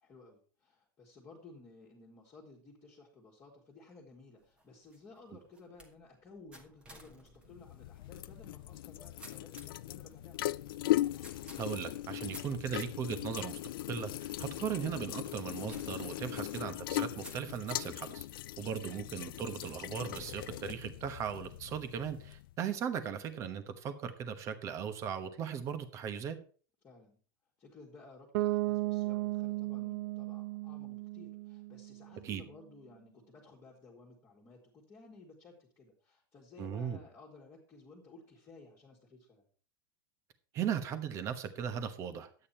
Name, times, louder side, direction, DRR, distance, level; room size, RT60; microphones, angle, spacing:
voice 1, 0.0-10.6 18.6-18.9 26.8-27.2 27.6-39.5, left 3 dB, 20° left, -4 dB, 1.9 m, -56 dB
sound 1, 4.4-18.0 18.6-19.0 19.6-21.5, right 1 dB, 10° right, 1.3 m, -57 dB
sound 2, 7.5-22.5, left 15 dB, 75° left, 0.4 m, -39 dB
voice 2, 11.6-13.6 13.9-18.2 18.6-26.4 32.2-32.4 36.6-37.0 40.5-42.3, right 8 dB, 25° right, 10 dB, 1.1 m, -38 dB
Bass guitar, 28.3-32.2, right 19 dB, 50° right, 0.4 m, -35 dB
11.0 x 8.8 x 4.3 m, 0.41 s
supercardioid pair, 165°, 12 cm